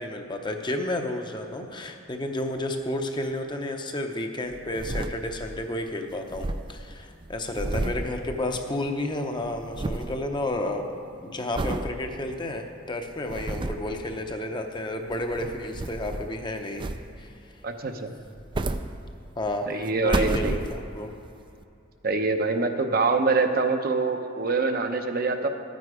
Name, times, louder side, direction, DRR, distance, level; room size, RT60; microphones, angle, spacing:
voice 1, 0.0-10.9 11.2-16.9 17.2-17.3 19.4-21.1, left 1 dB, 25° left, 4 dB, 0.8 m, -31 dB
sound 1, 4.5-5.6 5.9-6.0 6.2-8.9 9.2-10.2 10.7-11.0 11.5-11.9 12.4-12.5 13.1-13.9 14.9-16.4 16.8-17.4 18.2-19.5 19.9-21.1 21.6-21.7, right 2 dB, 25° right, 0.4 m, -32 dB
voice 2, 17.6-18.1 19.7-20.6 22.0-25.5, right 3 dB, 50° right, 6 dB, 0.8 m, -25 dB
12.5 x 9.2 x 4.9 m, 2.7 s
head